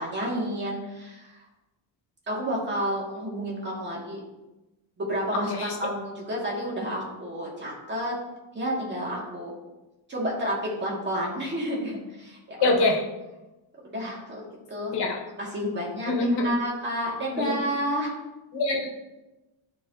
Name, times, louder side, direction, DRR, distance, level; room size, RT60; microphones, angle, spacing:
voice 1, 0.0-1.4 2.3-4.2 5.0-8.2 8.5-9.6 10.1-12.8 13.8-14.9 15.4-18.1, equal, 20° right, -4 dB, 2.4 m, -30 dB
voice 2, 12.6-13.0 14.9-15.2 16.0-16.5 17.3-17.5 18.5-18.9, left 2 dB, 55° left, -1 dB, 1.7 m, -24 dB
12.5 x 4.9 x 2.9 m, 1.0 s
cardioid pair, 155°, 47 cm